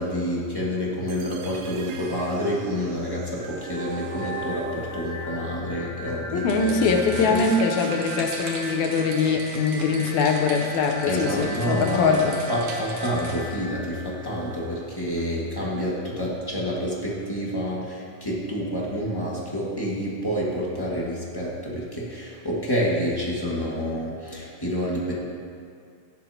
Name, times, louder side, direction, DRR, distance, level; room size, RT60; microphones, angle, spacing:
voice 1, 0.0-7.4 11.1-12.2 12.5-25.1, equal, 15° left, -6 dB, 0.9 m, -28 dB
sound 1, 1.1-7.1, right 5 dB, 70° right, 1.7 m, -40 dB
sound 2, 3.3-15.2, equal, 45° left, 3.6 m, -38 dB
voice 2, 6.3-12.4, left 4 dB, 80° left, 3 dB, 2.0 m, -22 dB
sound 3, 6.4-13.6, right 3 dB, 90° right, 2.7 m, -39 dB
15.0 x 11.0 x 2.8 m, 2.2 s
omnidirectional pair, 3.3 m